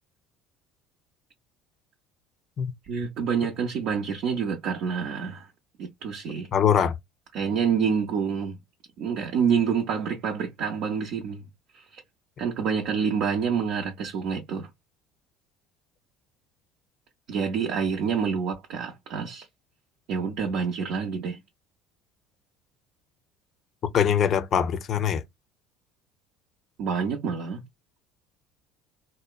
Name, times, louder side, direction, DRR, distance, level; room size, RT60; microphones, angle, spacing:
voice 1, 2.8-5.5 5.8-6.5 7.3-8.6 9.0-11.4 11.7-12.0 12.4-14.7 17.3-19.5 20.1-21.4 26.8-27.6, right 6 dB, 60° right, 0.6 m, -27 dB
voice 2, 6.5-7.0 23.9-25.2, left 8 dB, 50° left, 0.5 m, -22 dB
2.8 x 2.1 x 2.2 m
hypercardioid pair, 70°, 0 cm